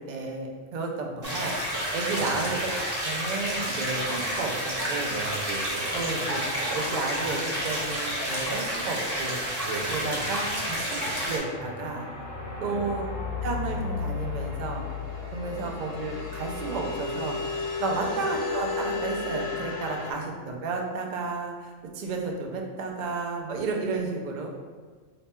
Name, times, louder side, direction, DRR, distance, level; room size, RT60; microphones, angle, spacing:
voice 1, 0.0-1.5 1.9-2.5 3.0-5.1 5.9-9.6 9.9-12.0 12.6-13.1 13.4-14.9 15.3-24.5, right 3 dB, 65° right, 1 dB, 0.4 m, -32 dB
sound 1, 1.2-11.4, equal, 20° right, 0.7 m, -30 dB
voice 2, 2.1-2.6 5.1-6.1 9.6-10.5 11.0-11.2 12.6-13.0 15.5-15.8 17.9-18.2, right 4 dB, 90° right, 0 dB, 1.0 m, -38 dB
sound 2, 9.7-20.1, left 4 dB, 65° left, 1.1 m, -34 dB
3.0 x 2.2 x 4.2 m, 1.5 s
omnidirectional pair, 1.3 m